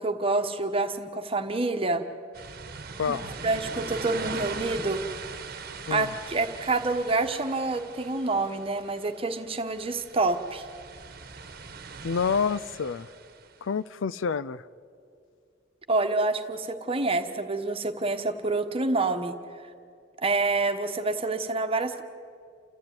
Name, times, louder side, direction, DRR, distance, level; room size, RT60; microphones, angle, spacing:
voice 1, 0.0-2.0 3.1-5.0 5.9-10.7 15.9-19.3 20.2-22.0, right 3 dB, 30° right, 7 dB, 1.3 m, -27 dB
sound 1, 2.3-13.5, right 4 dB, 50° right, 1.3 m, -40 dB
voice 2, 3.0-3.3 5.9-6.1 12.0-13.1 13.6-14.6, left 6 dB, 75° left, 16 dB, 0.5 m, -28 dB
29.5 x 13.5 x 9.6 m, 2.3 s
head